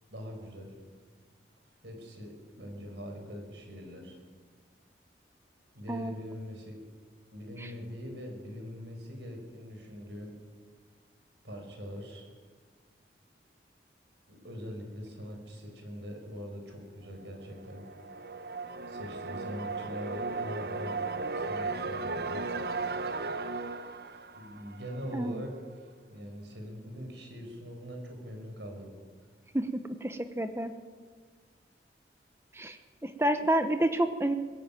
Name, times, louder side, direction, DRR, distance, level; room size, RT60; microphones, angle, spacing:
voice 1, 0.1-0.8 1.8-4.2 5.7-6.8 7.3-10.4 11.4-12.3 14.3-17.8 18.9-21.0 21.3-22.4 24.3-28.9, equal, 85° right, 3 dB, 5.6 m, -42 dB
sound 1, 17.6-25.3, right 3 dB, 60° right, 1.0 m, -36 dB
voice 2, 29.5-30.7 32.5-34.4, right 1 dB, 15° right, 8 dB, 0.9 m, -29 dB
21.0 x 15.0 x 9.0 m, 1.5 s
head